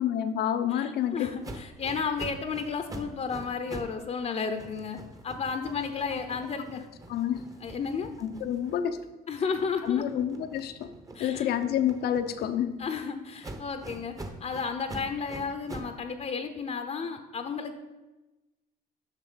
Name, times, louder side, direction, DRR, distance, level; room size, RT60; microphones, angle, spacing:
voice 1, 0.0-1.3 6.1-6.4 6.7-6.8 7.1-7.5 8.2-9.0 9.8-10.9 11.2-12.8, left 10 dB, 70° left, 10 dB, 0.8 m, -29 dB
voice 2, 0.7-5.0 5.2-6.9 7.6-8.1 9.3-10.0 11.1-11.5 12.8-14.1 14.4-17.8, left 5 dB, 40° left, 7 dB, 0.8 m, -33 dB
sound 1, 1.4-4.0 4.3-9.1 9.5-12.9 13.4-16.0, right 2 dB, 20° right, 1.0 m, -44 dB
7.4 x 6.0 x 6.9 m, 1.1 s
cardioid pair, 110°, 17 cm